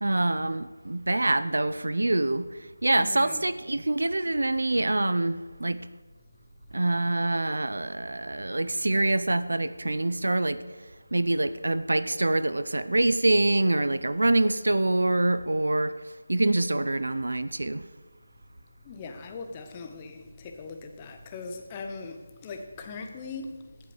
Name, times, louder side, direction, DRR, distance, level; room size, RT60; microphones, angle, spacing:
voice 1, 0.0-5.9 6.7-10.6 11.1-16.0 16.3-17.8, right 2 dB, 85° right, 0.5 m, -25 dB
voice 2, 3.0-3.5 18.8-23.6, left 4 dB, 15° left, 0.7 m, -40 dB
8.3 x 7.9 x 7.1 m
figure-of-eight pair, 175°, 0 cm